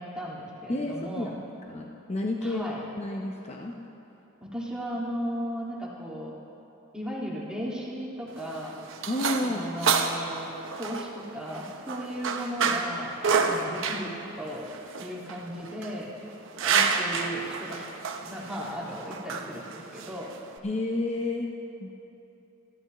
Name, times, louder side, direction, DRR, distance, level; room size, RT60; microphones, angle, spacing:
voice 1, 0.0-1.3 2.4-2.8 4.4-6.3 6.9-8.7 9.4-10.5 10.8-14.1 14.4-14.7 15.0-16.1 16.6-17.9 18.2-20.3, equal, 5° right, -5 dB, 1.9 m, -36 dB
voice 2, 0.7-1.3 1.6-2.6 3.0-3.7 9.1-9.6 20.6-21.5 21.8-21.9, left 2 dB, 30° left, 0 dB, 0.7 m, -30 dB
sound 1, 8.3-20.6, right 5 dB, 65° right, 0.8 m, -30 dB
21.5 x 13.5 x 3.0 m, 2.9 s
head